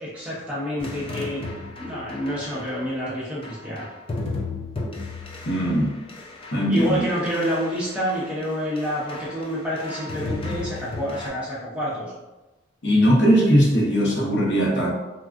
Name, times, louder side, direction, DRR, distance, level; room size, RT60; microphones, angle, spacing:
voice 1, 0.0-1.4 1.8-3.9 6.7-12.1, equal, 5° right, -8 dB, 0.7 m, -28 dB
sound 1, 0.8-2.8 3.4-8.4 8.8-9.5 9.8-11.3, left 3 dB, 25° left, 0.3 m, -34 dB
voice 2, 5.5-5.9 6.5-7.1 12.8-14.9, equal, 55° left, -3 dB, 0.7 m, -19 dB
3.5 x 2.4 x 2.3 m, 1.1 s
head